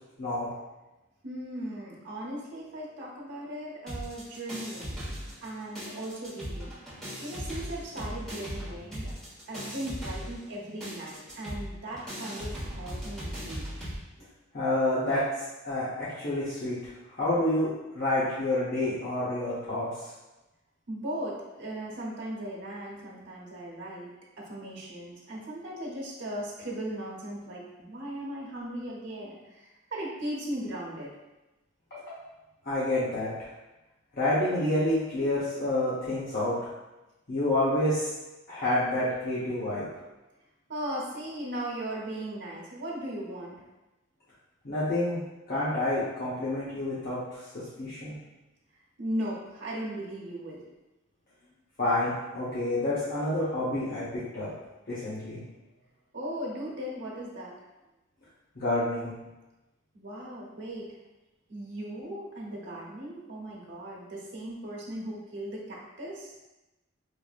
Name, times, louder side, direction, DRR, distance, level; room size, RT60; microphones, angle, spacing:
voice 1, 1.2-5.0 5.4-6.7 7.2-9.1 9.5-13.6 20.9-24.1 24.4-31.1 40.7-43.6 49.0-50.6 56.1-57.5 59.9-61.0 61.5-66.4, right 1 dB, 60° right, -4 dB, 0.9 m, -37 dB
sound 1, 3.9-5.5 5.7-14.0, equal, ahead, 1.3 m, -38 dB
voice 2, 14.5-15.2 15.6-19.9 31.9-32.2 32.6-33.3 34.1-36.5 37.3-38.1 38.5-39.9 44.6-45.2 45.5-48.1 51.8-54.0 54.3-54.5 54.9-55.4 58.6-59.1, left 1 dB, 45° left, -11 dB, 0.8 m, -28 dB
4.7 x 2.6 x 2.4 m, 1.0 s
head